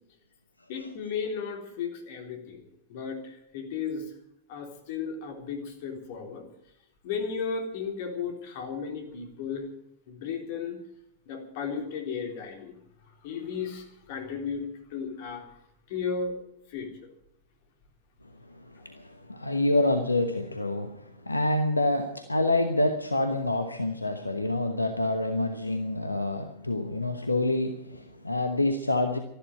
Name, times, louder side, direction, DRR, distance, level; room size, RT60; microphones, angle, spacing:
voice 1, 0.7-2.6 2.9-4.2 4.5-6.5 7.0-9.7 10.1-10.8 11.3-12.7 13.1-15.6 15.9-16.4 16.7-17.1, left 6 dB, 50° left, 4 dB, 3.6 m, -34 dB
voice 2, 18.5-29.2, left 2 dB, 85° left, 7 dB, 1.0 m, -27 dB
13.5 x 12.0 x 9.0 m, 0.77 s
figure-of-eight pair, 90°, 0 cm